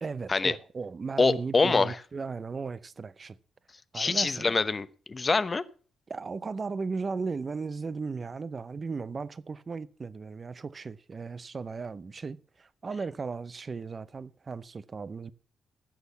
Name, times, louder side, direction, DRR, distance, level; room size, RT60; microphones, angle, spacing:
voice 1, 0.0-3.4 3.9-4.5 6.1-15.3, right 4 dB, 35° right, 0.6 m, -36 dB
voice 2, 1.2-1.9 3.9-5.6, left 4 dB, 30° left, 0.8 m, -25 dB
15.0 x 6.3 x 6.9 m
cardioid pair, 90°, 0 cm